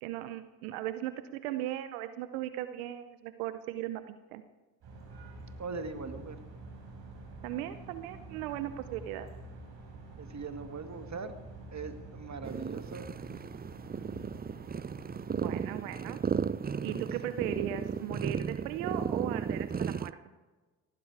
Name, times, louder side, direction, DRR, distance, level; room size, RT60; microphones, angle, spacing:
voice 1, 0.0-4.4 7.4-9.3 15.3-16.2 16.8-20.2, right 12 dB, 85° right, 11 dB, 0.8 m, -37 dB
sound 1, 4.8-15.2, right 2 dB, 65° right, 6.2 m, -48 dB
voice 2, 5.6-6.4 10.2-11.3 11.7-13.1 16.7-16.9, right 4 dB, 40° right, 8 dB, 2.1 m, -41 dB
sound 2, 12.4-20.1, right 6 dB, 20° right, 0.5 m, -35 dB
18.5 x 15.0 x 4.8 m, 1.3 s
hypercardioid pair, 45°, 42 cm